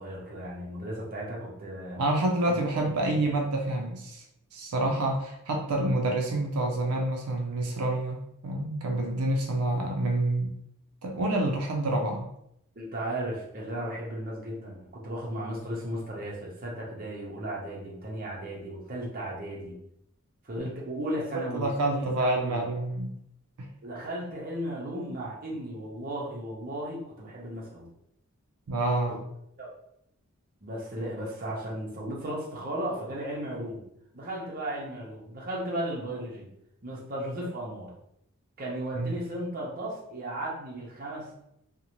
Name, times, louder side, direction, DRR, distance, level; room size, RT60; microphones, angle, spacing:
voice 1, 0.0-2.0 2.5-3.4 12.8-19.8 20.4-22.6 23.8-27.9 29.1-29.2 29.6-29.7 30.6-33.8 34.1-36.5 36.8-37.9 38.6-41.3, right 1 dB, 40° right, -3 dB, 0.7 m, -35 dB
voice 2, 2.0-4.2 4.5-10.6 11.0-12.3 21.5-23.1 23.6-23.7 28.7-29.2 39.0-39.1, right 1 dB, 85° right, 1 dB, 0.4 m, -28 dB
2.6 x 2.1 x 2.9 m, 0.76 s
head